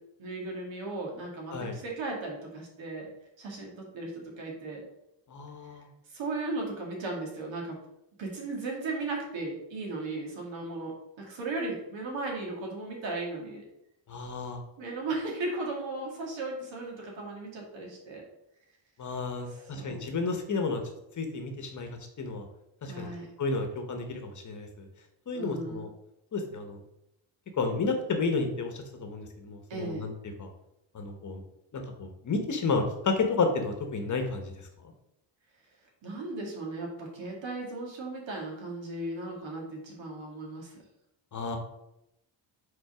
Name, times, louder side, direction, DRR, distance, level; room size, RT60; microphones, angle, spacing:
voice 1, 0.2-3.1 3.4-4.8 6.1-7.8 8.2-13.6 14.8-18.2 19.4-20.0 22.9-23.3 25.3-25.8 29.7-30.0 36.0-40.7, right 2 dB, 75° right, 0 dB, 2.0 m, -36 dB
voice 2, 5.3-5.9 14.1-14.6 19.0-20.8 21.2-21.9 22.2-22.4 22.8-23.1 23.4-24.9 25.3-25.9 26.3-26.8 27.6-30.1 30.4-30.5 30.9-31.4 31.7-34.5 41.3-41.6, left 4 dB, 40° left, 5 dB, 1.0 m, -31 dB
5.3 x 4.2 x 4.8 m, 0.84 s
cardioid pair, 145°, 46 cm